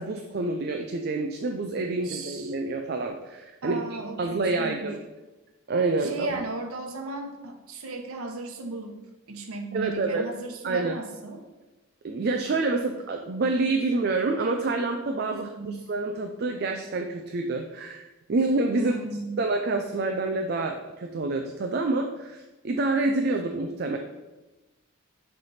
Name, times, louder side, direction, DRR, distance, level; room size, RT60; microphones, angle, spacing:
voice 1, 0.0-3.8 4.2-5.0 5.7-6.3 9.7-10.3 10.6-11.0 12.0-18.9 19.4-24.0, right 3 dB, 45° right, 4 dB, 0.4 m, -27 dB
voice 2, 2.0-2.5 3.6-4.9 6.0-11.4 15.3-15.8 18.7-19.4, right 3 dB, 80° right, 4 dB, 0.9 m, -36 dB
6.8 x 3.3 x 5.6 m, 1.1 s
head